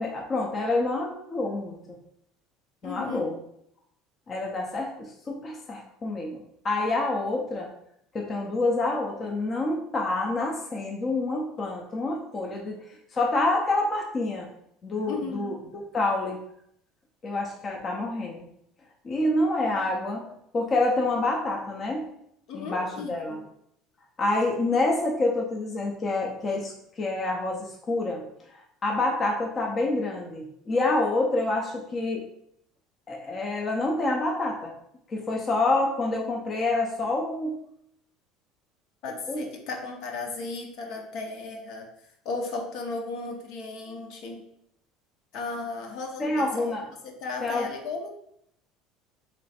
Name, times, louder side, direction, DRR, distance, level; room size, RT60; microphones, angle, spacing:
voice 1, 0.0-1.8 2.8-3.4 4.3-7.7 8.1-12.8 13.1-14.5 14.8-16.4 17.2-18.4 19.0-20.2 20.5-22.1 22.5-23.4 24.2-28.2 28.5-32.2 33.1-34.7 35.1-37.6 39.3-39.5 46.2-46.8 47.4-47.7, left 2 dB, 25° left, -1 dB, 0.6 m, -27 dB
voice 2, 2.8-3.3 15.1-15.6 19.6-20.3 22.5-23.4 39.0-41.9 42.2-44.4 45.3-46.7 47.0-48.1, left 3 dB, 55° left, 2 dB, 0.7 m, -35 dB
3.3 x 3.1 x 4.2 m, 0.74 s
cardioid pair, 155°, 0 cm